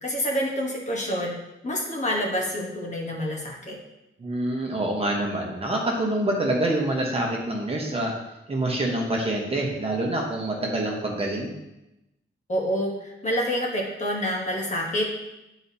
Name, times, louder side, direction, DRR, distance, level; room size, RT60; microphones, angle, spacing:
voice 1, 0.0-1.4 1.6-3.8 12.5-15.1, equal, 35° left, -1 dB, 1.0 m, -27 dB
voice 2, 4.2-8.1 8.5-11.5, right 1 dB, 30° right, -1 dB, 1.0 m, -26 dB
9.8 x 4.0 x 2.7 m, 0.93 s
wide cardioid pair, 175°, 21 cm